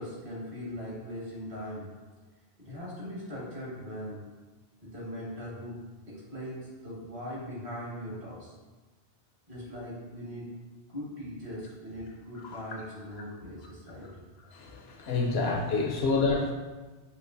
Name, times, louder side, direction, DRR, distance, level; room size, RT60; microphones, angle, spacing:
voice 1, 0.0-1.9 2.6-4.2 4.8-5.8 6.1-8.5 9.5-10.5 10.9-14.2, equal, 50° right, -6 dB, 1.4 m, -40 dB
voice 2, 14.5-16.5, left 3 dB, 70° left, 0 dB, 0.8 m, -28 dB
4.7 x 2.8 x 2.6 m, 1.3 s
omnidirectional pair, 1.1 m